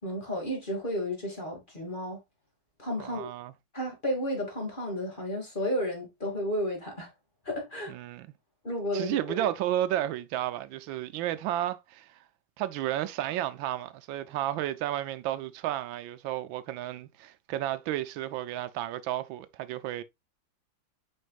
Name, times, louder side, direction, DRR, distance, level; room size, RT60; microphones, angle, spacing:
voice 1, 0.0-2.2 2.8-3.3 3.7-7.1 7.4-7.9 8.6-9.5, equal, 25° left, 2.4 m, -32 dB
voice 2, 3.0-3.5 7.9-8.3 8.9-12.2 12.6-20.0, right 13 dB, 85° right, 1.4 m, -32 dB
7.8 x 5.3 x 2.4 m
omnidirectional pair, 2.1 m